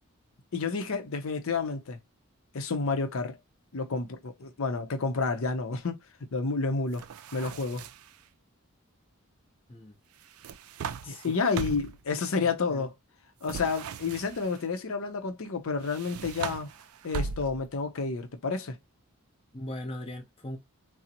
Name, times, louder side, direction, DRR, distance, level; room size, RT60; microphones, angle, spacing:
voice 1, 0.5-2.0 2.5-3.4 3.7-6.0 6.3-7.0 7.3-7.9 11.1-12.9 13.4-16.7 17.0-18.8, left 4 dB, 70° left, 0.6 m, -30 dB
sound 1, 6.9-8.2 10.2-12.0 13.4-14.6 15.8-17.8, right 6 dB, 75° right, 0.3 m, -39 dB
voice 2, 11.0-11.4 12.4-12.9 19.5-20.6, left 1 dB, 25° left, 0.7 m, -40 dB
3.8 x 2.0 x 2.8 m
head